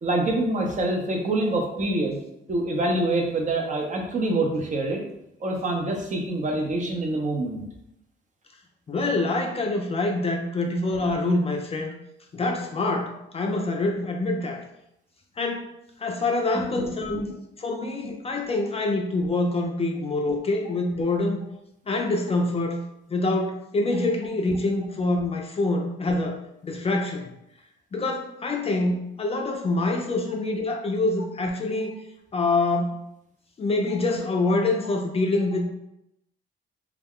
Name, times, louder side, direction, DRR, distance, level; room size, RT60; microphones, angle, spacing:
voice 1, 0.0-2.2 2.5-5.0 5.4-7.6 16.5-17.3, right 2 dB, 40° right, 1 dB, 0.6 m, -26 dB
voice 2, 8.9-11.9 12.3-14.6 15.4-15.7 16.0-17.2 17.6-21.4 21.9-22.8 23.1-26.4 26.6-27.3 27.9-32.0 32.3-33.0 33.6-35.6, left 2 dB, 30° left, 2 dB, 0.4 m, -25 dB
2.3 x 2.2 x 3.5 m, 0.82 s
cardioid pair, 90°, 20 cm